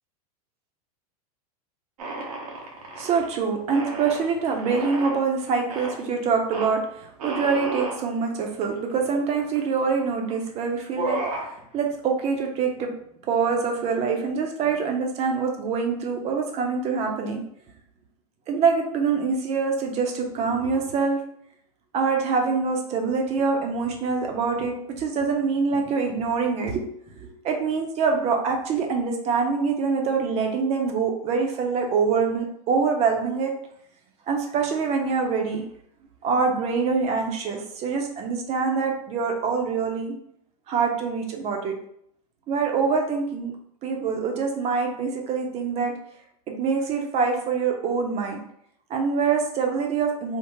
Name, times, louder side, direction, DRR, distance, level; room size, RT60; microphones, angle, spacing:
sound 1, 2.0-3.3 3.7-5.2 5.7-6.0 6.5-6.7 7.2-8.0 8.6-8.7 8.9-9.7 10.3-10.5 10.8-11.5, right 2 dB, 80° right, 0.9 m, -32 dB
voice 1, 3.0-12.9 13.3-17.4 18.5-21.2 21.9-26.9 27.2-33.5 34.3-35.6 36.2-40.1 40.7-41.7 42.5-43.5 43.8-45.9 46.5-48.4 48.9-50.4, right 5 dB, 35° right, 2 dB, 0.6 m, -25 dB
3.5 x 2.0 x 3.0 m, 0.70 s
hypercardioid pair, 120°, 19 cm